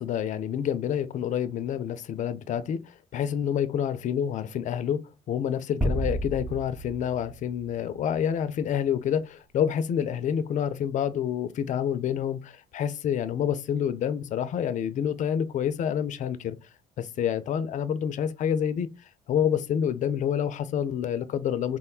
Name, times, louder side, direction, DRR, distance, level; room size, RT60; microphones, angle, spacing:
voice 1, 0.0-16.6 17.0-18.9 19.3-21.8, left 9 dB, 50° left, 0.4 m, -28 dB
sound 1, 5.8-8.4, equal, 10° right, 0.8 m, -31 dB
3.5 x 2.2 x 2.3 m
cardioid pair, 110°, 17 cm